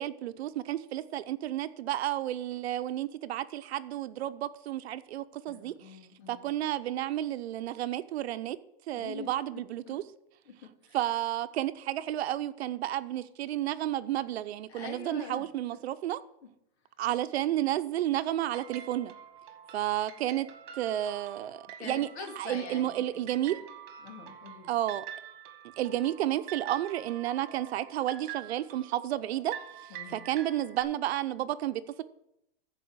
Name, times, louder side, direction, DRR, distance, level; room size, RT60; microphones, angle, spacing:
voice 1, 0.0-6.0 6.3-8.6 8.9-10.0 10.9-16.2 17.0-19.1 19.7-20.5 20.7-22.1 22.4-23.6 24.7-25.1 25.8-32.0, right 13 dB, 75° right, 0.8 m, -32 dB
voice 2, 5.5-6.5 8.9-9.3 9.9-10.0 10.5-11.0 14.7-15.5 21.8-23.6 24.0-24.8 29.9-30.3, left 5 dB, 90° left, 2.7 m, -45 dB
sound 1, 18.4-30.8, right 10 dB, 50° right, 1.7 m, -46 dB
14.0 x 5.0 x 6.3 m
supercardioid pair, 165°, 32 cm